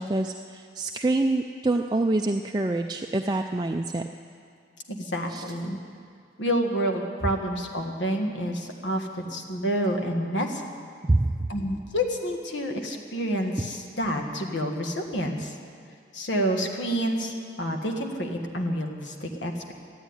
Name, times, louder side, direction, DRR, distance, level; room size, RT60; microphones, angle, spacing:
voice 1, 0.0-4.0 5.3-5.4 11.0-11.3, right 2 dB, 20° right, 4 dB, 0.4 m, -26 dB
voice 2, 4.9-5.8 6.4-10.6 11.5-15.6 16.1-19.7, equal, 80° left, 3 dB, 1.6 m, -28 dB
13.5 x 11.0 x 9.6 m, 2.2 s
head